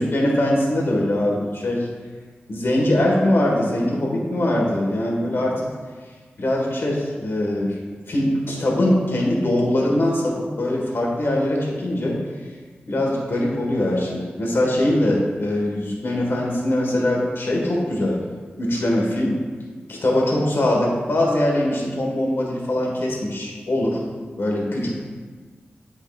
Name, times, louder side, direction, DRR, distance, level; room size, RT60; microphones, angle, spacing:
voice 1, 0.0-1.9 2.5-5.7 6.4-7.8 8.1-12.2 12.9-18.2 18.6-19.4 19.9-24.0 24.4-24.9, left 1 dB, 65° left, -2 dB, 1.5 m, -22 dB
8.2 x 4.9 x 2.4 m, 1.5 s
cardioid pair, 60°, 4 cm